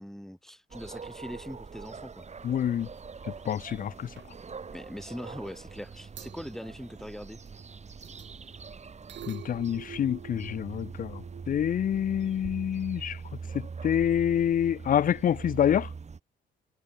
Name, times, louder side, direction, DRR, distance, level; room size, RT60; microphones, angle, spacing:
voice 1, 0.0-2.3 4.7-7.4, equal, ahead, 2.8 m, -41 dB
sound 1, 0.7-16.2, right 5 dB, 35° right, 3.9 m, -43 dB
sound 2, 2.2-2.4 2.7-3.0 3.3-3.8 4.2-4.3 5.8-5.9 6.2-7.6 8.0-12.7, right 10 dB, 65° right, 4.9 m, -49 dB
voice 2, 2.4-2.9 3.5-4.1 9.3-13.2 13.5-15.9, left 9 dB, 45° left, 0.5 m, -27 dB
cardioid pair, 90°, 20 cm